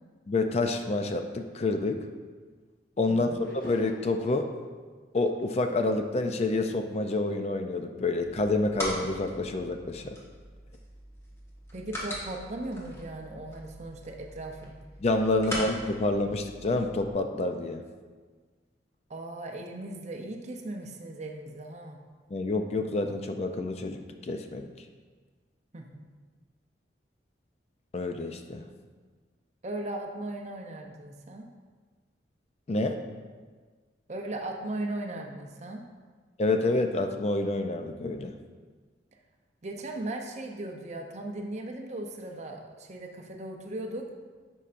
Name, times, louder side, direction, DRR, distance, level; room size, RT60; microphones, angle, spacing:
voice 1, 0.3-2.0 3.0-4.5 5.1-10.2 15.0-17.8 22.3-24.7 27.9-28.7 32.7-33.0 36.4-38.3, left 2 dB, 35° left, 6 dB, 0.4 m, -28 dB
voice 2, 3.1-3.5 11.7-14.7 15.5-15.7 19.1-22.0 25.7-26.0 29.6-31.4 34.1-35.8 39.6-44.1, right 1 dB, 40° right, 2 dB, 0.6 m, -37 dB
sound 1, 3.4-4.3, equal, 50° left, 1.8 m, -45 dB
sound 2, 8.2-17.1, equal, 15° left, 1.2 m, -41 dB
9.8 x 5.4 x 2.5 m, 1.5 s
head